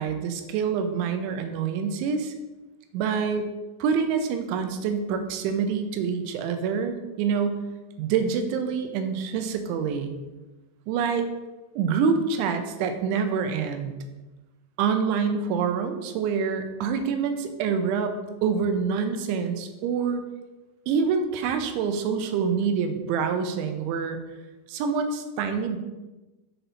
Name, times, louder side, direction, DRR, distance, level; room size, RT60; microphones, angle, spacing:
voice 1, 0.0-2.3 2.9-3.5 3.8-7.6 8.0-10.1 10.9-11.3 11.8-13.9 14.8-20.2 20.9-24.2 24.7-25.8, right 6 dB, 80° right, 7 dB, 3.1 m, -26 dB
7.9 x 6.0 x 4.0 m, 1.1 s
omnidirectional pair, 5.4 m